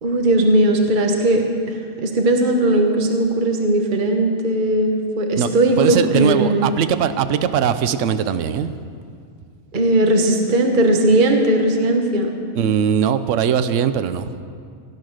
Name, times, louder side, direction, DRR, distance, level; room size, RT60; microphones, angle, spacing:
voice 1, 0.0-6.7 9.7-12.3, right 1 dB, 40° right, 3 dB, 1.3 m, -18 dB
voice 2, 5.8-8.8 12.5-14.3, right 8 dB, 75° right, 11 dB, 1.0 m, -20 dB
16.5 x 10.5 x 6.4 m, 2.2 s
omnidirectional pair, 1.3 m